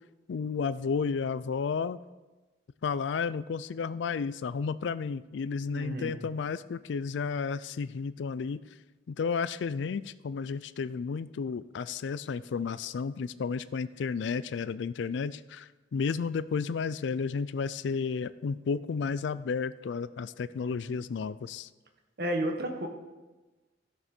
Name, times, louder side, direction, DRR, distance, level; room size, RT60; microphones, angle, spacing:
voice 1, 0.3-2.0 2.8-8.6 9.1-21.7, left 5 dB, 75° left, 16 dB, 0.4 m, -32 dB
voice 2, 5.7-6.2 20.8-20.9 22.2-22.9, right 1 dB, 55° right, 4 dB, 1.3 m, -32 dB
15.5 x 6.7 x 4.3 m, 1.2 s
head